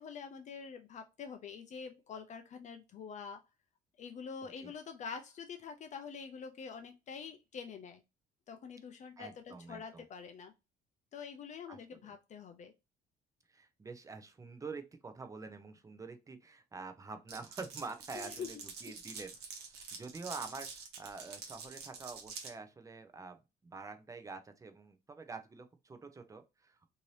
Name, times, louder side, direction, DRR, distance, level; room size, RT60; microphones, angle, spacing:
voice 1, 0.0-3.4 4.0-8.0 8.5-10.5 11.1-12.7 18.1-18.5, left 6 dB, 45° left, 0.4 m, -46 dB
voice 2, 9.2-10.0 11.7-12.1 13.5-20.7 21.0-26.9, right 4 dB, 20° right, 0.6 m, -47 dB
Glass, 17.3-22.5, right 5 dB, 75° right, 0.9 m, -47 dB
2.7 x 2.6 x 3.1 m
cardioid pair, 110°, 17 cm